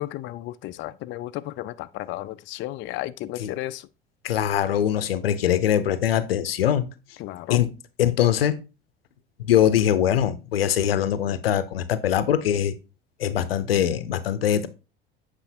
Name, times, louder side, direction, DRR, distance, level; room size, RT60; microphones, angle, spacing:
voice 1, 0.0-3.9 7.2-7.6, left 15 dB, 40° left, 0.4 m, -33 dB
voice 2, 4.2-6.9 7.5-7.7 8.0-8.6 9.4-12.7 13.2-14.7, left 10 dB, 85° left, 0.6 m, -22 dB
8.4 x 4.9 x 2.7 m
hypercardioid pair, 70°, 29 cm